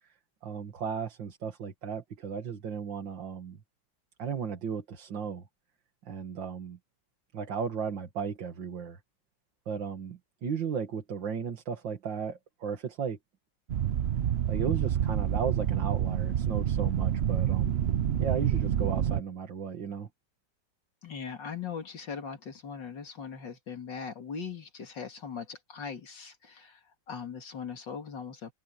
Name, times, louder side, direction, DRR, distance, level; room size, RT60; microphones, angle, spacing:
voice 1, 0.4-3.6 4.2-5.4 6.0-6.8 7.3-9.0 9.7-13.2 14.5-17.8 18.2-20.1, right 6 dB, 85° right, 2.6 m, -35 dB
sound 1, 13.7-19.2, right 10 dB, 65° right, 0.6 m, -28 dB
voice 2, 21.0-26.8 27.1-28.5, left 6 dB, 75° left, 3.2 m, -40 dB
omnidirectional pair, 2.0 m